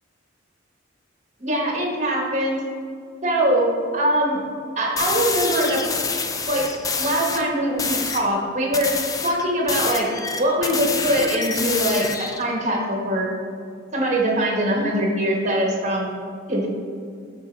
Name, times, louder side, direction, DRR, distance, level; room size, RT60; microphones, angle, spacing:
voice 1, 1.4-2.6 3.2-4.4 4.8-5.8 6.5-6.6 7.0-8.9 9.2-10.1 10.4-13.3 13.9-16.1 16.5-16.7, right 1 dB, 35° right, -2 dB, 1.5 m, -22 dB
sound 1, 5.0-7.4 7.8-8.3 8.7-12.4, left 4 dB, 15° left, 0.4 m, -27 dB
12.0 x 4.5 x 3.4 m, 2.2 s
head